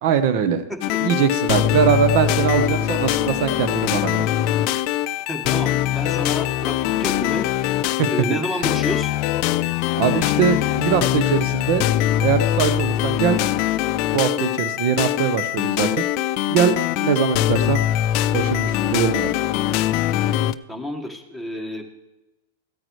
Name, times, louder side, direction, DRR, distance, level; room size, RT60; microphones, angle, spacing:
voice 1, 0.0-0.6 1.0-4.3 8.0-8.4 10.0-11.9 12.2-13.4 14.1-16.1 16.5-16.7 17.0-17.8 18.3-19.3, right 8 dB, 55° right, 11 dB, 1.0 m, -21 dB
sound 1, 0.8-20.5, left 13 dB, 50° left, 0.4 m, -22 dB
voice 2, 5.3-7.7 8.0-9.1 20.7-21.8, left 1 dB, 5° right, 5 dB, 1.6 m, -29 dB
15.5 x 8.9 x 3.2 m, 0.99 s
hypercardioid pair, 120°, 0 cm